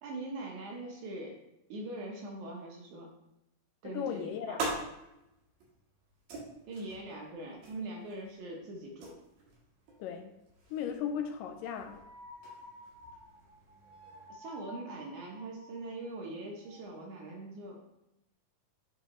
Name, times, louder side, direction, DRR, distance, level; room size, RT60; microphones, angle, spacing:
voice 1, 0.0-1.4 1.7-3.2 3.8-4.6 6.7-9.1 14.3-17.8, right 2 dB, 70° right, 0 dB, 2.2 m, -42 dB
voice 2, 3.8-4.8 10.0-10.4 10.7-12.0, left 8 dB, 80° left, 6 dB, 2.0 m, -37 dB
sound 1, 3.9-14.3, right 2 dB, 85° right, 3.7 m, -45 dB
sound 2, 11.5-16.1 16.5-16.8, left 1 dB, 50° right, 0.9 m, -52 dB
10.5 x 3.6 x 3.0 m, 0.87 s
omnidirectional pair, 4.0 m